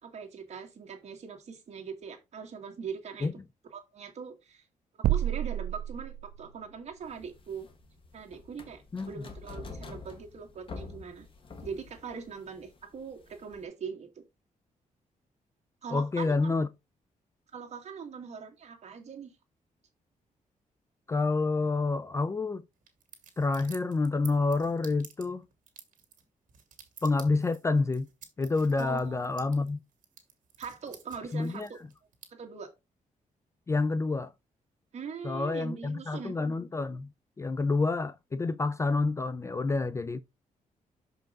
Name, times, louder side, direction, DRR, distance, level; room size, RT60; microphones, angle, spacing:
voice 1, 0.0-3.3 3.7-4.6 5.1-7.7 8.1-11.3 11.6-14.2 15.8-16.5 17.5-19.3 28.8-29.7 30.6-31.8 32.3-32.7 34.9-36.3, right 6 dB, 50° right, 1.9 m, -41 dB
sound 1, 5.0-6.6, right 13 dB, 90° right, 0.4 m, -29 dB
sound 2, 7.0-13.6, left 4 dB, 40° left, 1.4 m, -47 dB
voice 2, 15.9-16.7 21.1-22.6 23.4-25.4 27.0-28.1 28.4-29.8 31.3-31.7 33.7-34.3 35.2-37.1 37.4-40.2, left 3 dB, 20° left, 0.3 m, -28 dB
sound 3, 22.8-32.3, right 8 dB, 70° right, 2.1 m, -51 dB
6.5 x 5.2 x 3.7 m
wide cardioid pair, 155°, 14 cm